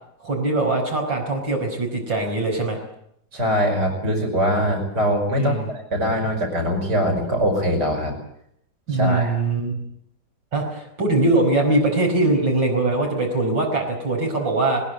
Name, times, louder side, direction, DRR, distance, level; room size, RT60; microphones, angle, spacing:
voice 1, 0.2-2.8 5.3-5.7 8.9-9.8 10.5-14.8, right 2 dB, 85° right, 0 dB, 5.7 m, -22 dB
voice 2, 3.3-8.1 8.9-9.4, equal, 65° right, 2 dB, 6.2 m, -22 dB
21.0 x 21.0 x 9.2 m, 0.73 s
omnidirectional pair, 1.9 m